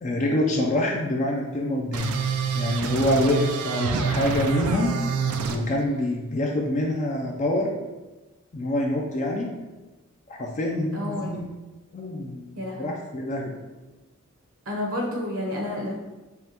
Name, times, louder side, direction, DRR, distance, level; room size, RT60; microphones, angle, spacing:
voice 1, 0.0-2.2 2.5-4.9 5.5-7.7 8.5-9.5 10.3-11.5 11.9-13.6, left 1 dB, 35° left, 0 dB, 0.4 m, -26 dB
sound 1, 1.9-5.6, right 5 dB, 85° right, 0.4 m, -26 dB
voice 2, 10.9-11.3 12.5-12.9 14.6-15.9, left 1 dB, 70° right, -1 dB, 0.9 m, -30 dB
5.3 x 2.2 x 2.9 m, 1.1 s
head